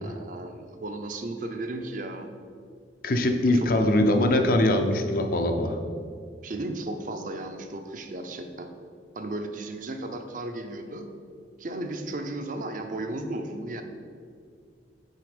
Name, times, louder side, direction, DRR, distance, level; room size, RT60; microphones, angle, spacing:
voice 1, 0.0-2.3 3.5-3.7 6.4-8.7 9.1-11.1 11.6-13.8, right 2 dB, 45° right, 6 dB, 0.5 m, -35 dB
voice 2, 3.0-5.8, left 1 dB, 50° left, 5 dB, 0.6 m, -22 dB
6.5 x 4.3 x 5.0 m, 2.2 s
head